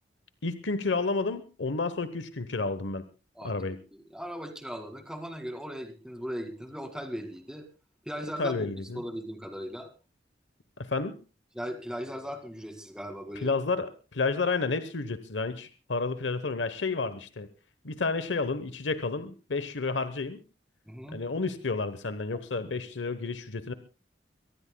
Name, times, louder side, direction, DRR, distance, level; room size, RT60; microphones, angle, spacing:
voice 1, 0.4-3.0 3.4-3.8 8.4-9.0 10.8-11.1 13.4-17.5 17.8-20.4 21.1-23.7, left 3 dB, 80° left, 12 dB, 1.0 m, -31 dB
voice 2, 3.9-7.6 8.1-8.7 9.0-9.9 11.5-13.5 20.9-21.2, equal, 5° right, 5 dB, 2.1 m, -38 dB
24.5 x 18.5 x 2.3 m, 0.33 s
head